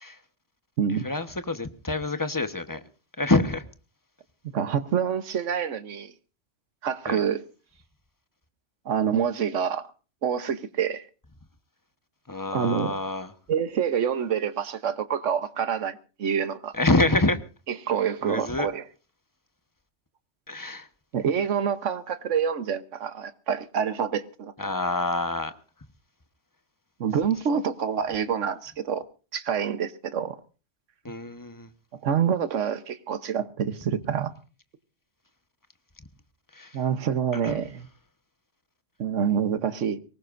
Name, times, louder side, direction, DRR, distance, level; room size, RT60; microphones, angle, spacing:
voice 1, 0.9-2.8 3.2-3.7 7.1-7.2 12.3-13.3 16.7-17.4 18.2-18.7 20.5-20.9 24.6-25.5 31.0-31.7 36.5-36.8 37.4-37.6, left 2 dB, 15° left, 1.1 m, -26 dB
voice 2, 4.5-6.1 6.8-7.4 8.8-9.8 10.2-11.1 12.5-12.9 13.5-16.7 17.8-18.8 21.1-24.5 27.0-29.0 29.3-30.4 32.0-34.3 36.7-37.9 39.0-40.0, right 7 dB, 80° right, 1.4 m, -27 dB
23.0 x 19.5 x 2.6 m
omnidirectional pair, 1.2 m